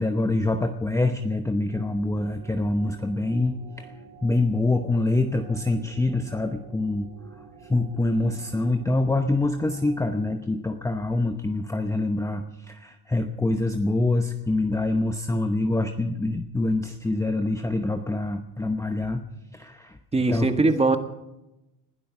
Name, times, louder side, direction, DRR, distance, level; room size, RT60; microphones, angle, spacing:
voice 1, 0.0-3.9 4.2-7.1 7.7-19.2 19.5-20.0 20.3-20.5, left 2 dB, 5° left, 6 dB, 0.8 m, -25 dB
sound 1, 1.7-10.4, right 6 dB, 85° right, 3.6 m, -49 dB
voice 2, 20.1-21.0, right 3 dB, 15° right, 7 dB, 1.6 m, -21 dB
20.5 x 12.0 x 6.0 m, 0.92 s
cardioid pair, 115°, 41 cm